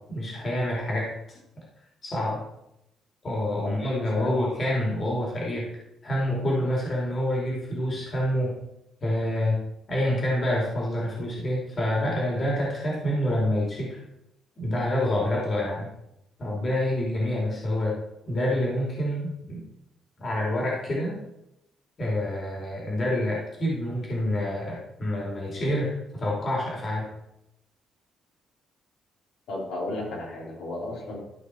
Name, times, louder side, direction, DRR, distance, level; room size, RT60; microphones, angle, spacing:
voice 1, 0.1-1.1 2.0-2.4 3.2-5.7 6.0-8.5 9.0-9.6 9.9-14.0 14.6-15.9 16.4-18.0 18.3-19.6 20.2-21.2 22.0-27.1, left 1 dB, 35° left, -4 dB, 3.1 m, -27 dB
voice 2, 3.6-4.4 29.5-31.2, left 2 dB, 80° left, -4 dB, 3.5 m, -34 dB
13.5 x 4.9 x 4.6 m, 0.84 s
cardioid pair, 145°, 0 cm